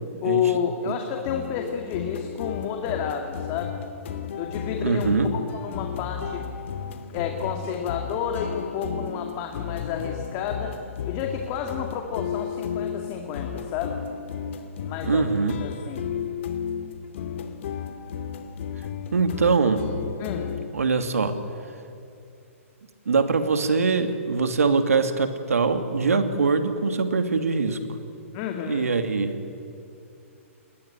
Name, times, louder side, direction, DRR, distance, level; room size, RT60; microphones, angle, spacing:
voice 1, 0.2-3.8 4.4-6.4 7.1-10.7 11.0-14.0 14.9-15.3 15.6-16.1 20.2-20.5 28.3-28.9, left 8 dB, 35° left, 3 dB, 2.4 m, -30 dB
sound 1, 1.2-20.7, left 8 dB, 60° left, 2.4 m, -33 dB
voice 2, 4.8-5.3 15.0-15.6 19.1-19.8 20.7-21.3 23.1-27.8 28.7-29.4, right 4 dB, 90° right, 8 dB, 2.7 m, -23 dB
29.0 x 20.0 x 10.0 m, 2.5 s
hypercardioid pair, 140°, 8 cm